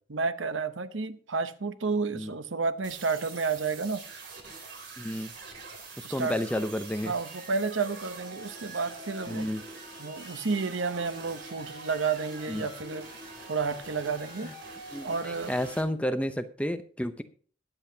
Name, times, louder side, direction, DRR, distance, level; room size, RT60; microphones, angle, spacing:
voice 1, 0.1-4.0 6.0-6.4 7.0-9.5 10.0-13.1 13.5-14.5 15.0-15.5, right 4 dB, 80° right, 0.8 m, -31 dB
sound 1, 2.8-15.8, right 3 dB, 60° right, 3.4 m, -44 dB
voice 2, 5.0-5.3 6.0-7.1 9.3-9.6 12.5-12.7 14.4-14.5 14.9-17.2, equal, 5° left, 0.6 m, -31 dB
21.0 x 8.0 x 2.8 m
head